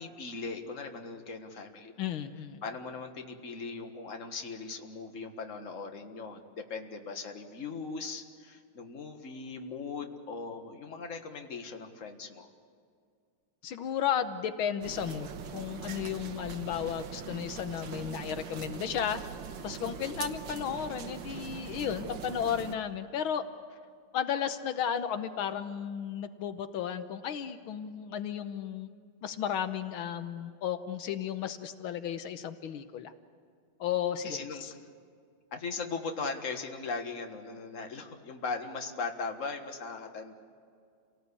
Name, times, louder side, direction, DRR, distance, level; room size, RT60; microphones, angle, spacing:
voice 1, 0.0-1.9 2.6-12.5 20.2-20.3 34.2-34.8 35.5-40.3, left 4 dB, 40° left, 4 dB, 1.9 m, -39 dB
voice 2, 2.0-2.6 13.6-19.2 19.6-23.4 24.1-28.9 29.2-33.1 33.8-34.7, left 9 dB, 85° left, 10 dB, 1.8 m, -34 dB
sound 1, 14.8-22.8, right 7 dB, 70° right, 1.8 m, -42 dB
28.0 x 18.5 x 8.4 m, 2.3 s
omnidirectional pair, 2.2 m